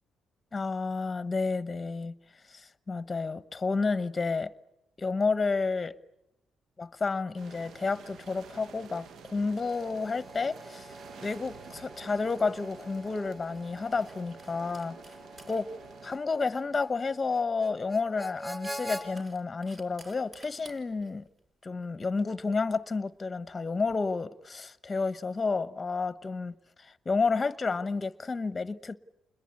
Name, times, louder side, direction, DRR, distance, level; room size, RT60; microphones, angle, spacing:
voice 1, 0.5-2.1 2.5-4.5 5.0-5.9 6.8-15.0 15.5-15.7 16.0-21.2 21.6-29.0, left 4 dB, 25° left, 1.0 m, -31 dB
sound 1, 7.4-16.2, right 6 dB, 70° right, 0.9 m, -49 dB
Harmonica, 9.5-19.1, equal, 5° right, 6.0 m, -45 dB
sound 2, 13.5-23.9, right 1 dB, 35° right, 4.5 m, -58 dB
29.5 x 21.5 x 8.6 m
cardioid pair, 90°, 0 cm